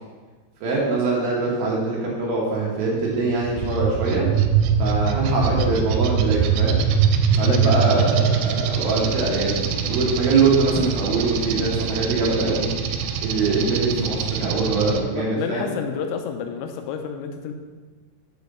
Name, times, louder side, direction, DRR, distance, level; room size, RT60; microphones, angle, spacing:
voice 1, 0.6-4.3 4.8-6.9 7.4-12.7 13.2-15.7, right 3 dB, 70° right, -3 dB, 2.5 m, -23 dB
sound 1, 3.2-15.0, right 7 dB, 90° right, 3.2 m, -23 dB
voice 2, 5.3-5.8 7.4-8.1 15.1-17.5, left 7 dB, 80° left, 5 dB, 2.8 m, -30 dB
7.0 x 5.0 x 6.5 m, 1.4 s
omnidirectional pair, 5.7 m